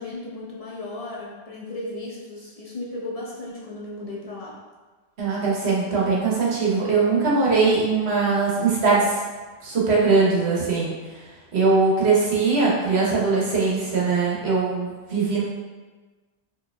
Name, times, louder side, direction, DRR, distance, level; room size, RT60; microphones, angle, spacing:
voice 1, 0.0-4.5, left 2 dB, 45° left, -5 dB, 0.6 m, -35 dB
voice 2, 5.2-9.2 9.6-10.9 11.5-15.4, right 4 dB, 90° right, -5 dB, 1.2 m, -21 dB
4.6 x 2.9 x 2.2 m, 1.3 s
omnidirectional pair, 1.1 m